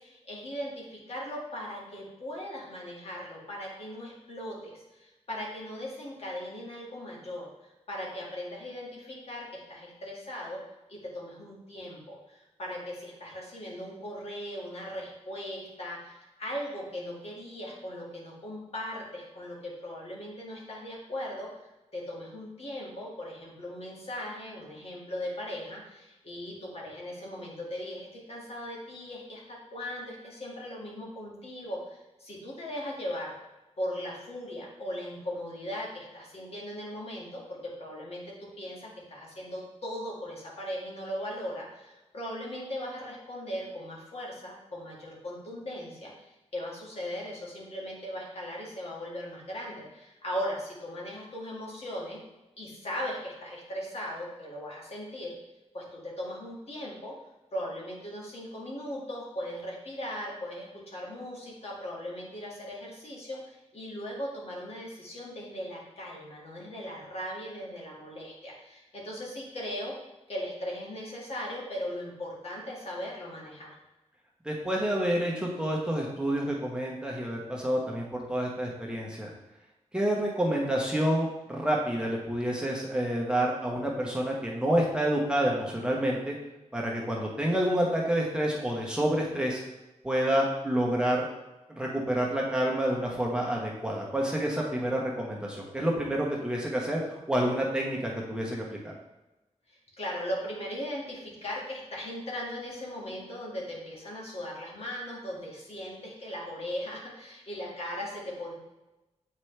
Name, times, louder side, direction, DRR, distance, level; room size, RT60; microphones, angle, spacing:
voice 1, 0.0-7.4 7.9-10.6 10.9-21.5 21.9-29.4 29.7-33.3 33.8-52.2 52.6-55.4 55.7-57.1 57.5-69.9 70.3-73.7 99.7-108.5, equal, 60° left, -4 dB, 2.0 m, -38 dB
voice 2, 74.4-79.3 79.9-86.3 86.7-89.6 90.0-91.2 91.8-98.9, right 1 dB, 5° right, -3 dB, 1.1 m, -28 dB
8.0 x 4.5 x 3.3 m, 1.0 s
wide cardioid pair, 110°, 12 cm